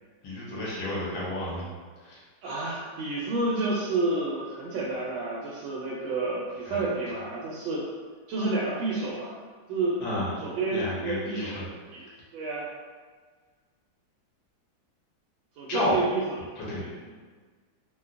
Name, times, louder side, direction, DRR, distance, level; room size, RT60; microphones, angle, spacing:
voice 1, 0.2-1.7 2.0-2.2 6.7-6.9 10.0-10.3 10.7-11.6 15.7-16.0 16.6-16.8, left 1 dB, 75° left, -7 dB, 1.8 m, -31 dB
voice 2, 2.4-7.8 8.3-9.3 9.7-10.0 10.4-11.6 11.9-12.7 15.6-16.5 16.8-17.1, right 2 dB, 80° right, -5 dB, 1.4 m, -30 dB
4.1 x 2.2 x 2.4 m, 1.5 s
omnidirectional pair, 2.2 m